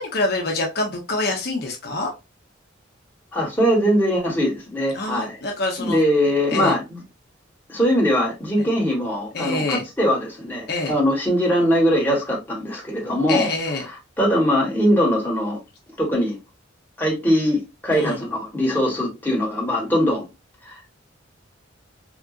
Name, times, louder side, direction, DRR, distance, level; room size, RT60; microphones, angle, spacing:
voice 1, 0.0-2.1 4.9-6.0 6.5-6.7 8.6-8.7 9.3-9.8 10.7-10.9 13.3-13.9 17.9-18.2, left 2 dB, 50° left, 0.6 m, -26 dB
voice 2, 3.3-5.4 5.8-7.0 7.7-13.5 13.8-15.6 16.0-16.4 17.0-20.3 20.6-20.9, equal, 10° left, 1.0 m, -21 dB
3.6 x 2.4 x 2.3 m
head